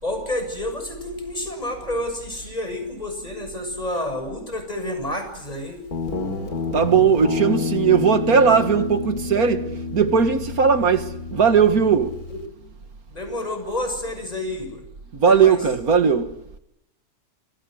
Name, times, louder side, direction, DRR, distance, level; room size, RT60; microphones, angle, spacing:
voice 1, 0.0-5.8 12.3-12.4 13.1-14.8 15.3-15.6, left 1 dB, 25° left, 7.2 m, -29 dB
Guitar, 5.9-12.5, left 4 dB, 80° left, 3.5 m, -29 dB
voice 2, 6.7-9.6 9.9-12.1 15.2-16.3, right 6 dB, 75° right, 2.2 m, -18 dB
29.5 x 26.0 x 6.5 m
omnidirectional pair, 1.6 m